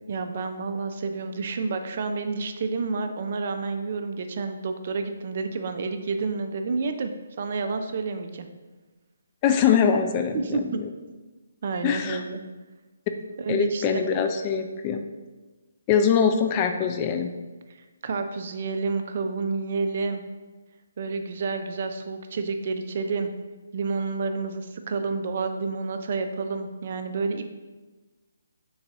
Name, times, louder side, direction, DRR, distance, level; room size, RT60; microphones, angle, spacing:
voice 1, 0.1-7.1 7.4-8.5 10.3-10.8 11.6-12.4 13.4-13.8 18.0-20.2 21.0-23.3 23.7-27.4, right 4 dB, 50° right, 7 dB, 0.4 m, -29 dB
voice 2, 9.4-10.9 11.8-12.2 13.5-15.0 15.9-17.3, left 7 dB, 25° left, 6 dB, 0.3 m, -23 dB
3.9 x 2.6 x 4.5 m, 1.2 s
figure-of-eight pair, 145°, 0 cm